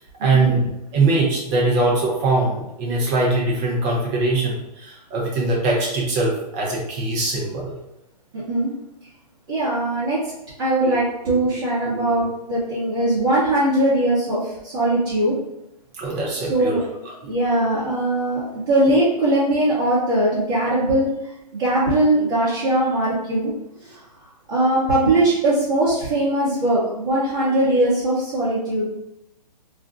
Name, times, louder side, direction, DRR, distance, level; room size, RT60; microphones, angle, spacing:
voice 1, 0.2-0.6 0.9-7.8 16.0-16.8, right 2 dB, 15° right, -3 dB, 0.5 m, -21 dB
voice 2, 8.3-8.7 9.5-10.3 10.6-15.3 16.4-16.8 17.2-21.1 21.5-23.5 23.8-24.0 24.5-28.9, right 1 dB, 35° right, -9 dB, 0.9 m, -20 dB
2.5 x 2.1 x 3.6 m, 0.85 s
hypercardioid pair, 155°, 21 cm